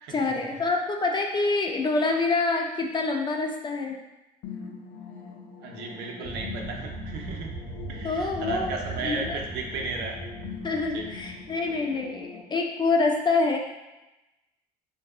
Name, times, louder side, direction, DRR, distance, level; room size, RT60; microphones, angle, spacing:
voice 1, 0.1-4.0 8.0-8.7 9.0-9.4 10.6-13.6, left 3 dB, 25° left, 2 dB, 0.4 m, -26 dB
sound 1, 4.4-12.4, left 6 dB, 90° left, 0.5 m, -42 dB
voice 2, 5.6-7.5 7.9-10.2 10.9-11.1, right 4 dB, 80° right, 1 dB, 0.6 m, -35 dB
sound 2, 6.2-12.0, right 2 dB, 35° right, 0.8 m, -39 dB
3.5 x 2.6 x 2.3 m, 1.0 s
cardioid pair, 110°, 17 cm